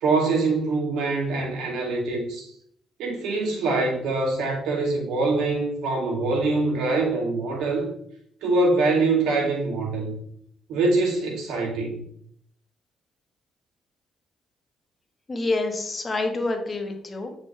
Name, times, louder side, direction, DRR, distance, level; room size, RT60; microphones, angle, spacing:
voice 1, 0.0-2.5 3.0-7.9 8.4-10.1 10.7-12.0, right 3 dB, 85° right, -1 dB, 2.4 m, -24 dB
voice 2, 15.3-17.3, left 2 dB, 30° left, 4 dB, 1.3 m, -27 dB
8.2 x 5.2 x 3.3 m, 0.66 s
cardioid pair, 90°, 0 cm